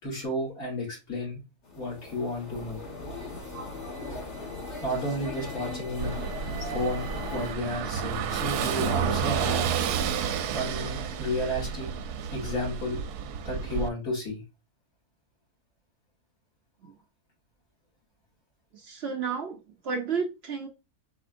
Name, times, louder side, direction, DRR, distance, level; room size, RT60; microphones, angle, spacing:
voice 1, 0.0-1.4 1.7-2.8 4.8-6.1 6.6-9.6 10.5-11.9 12.3-13.0 13.4-14.4, left 1 dB, 65° left, 2.7 m, -32 dB
sound 1, 1.6-7.5, left 2 dB, 50° left, 1.7 m, -38 dB
Car passing by / Engine, 6.0-13.9, right 7 dB, 85° right, 1.1 m, -30 dB
voice 2, 18.7-20.7, right 5 dB, 60° right, 0.7 m, -32 dB
5.0 x 3.6 x 2.5 m
omnidirectional pair, 1.6 m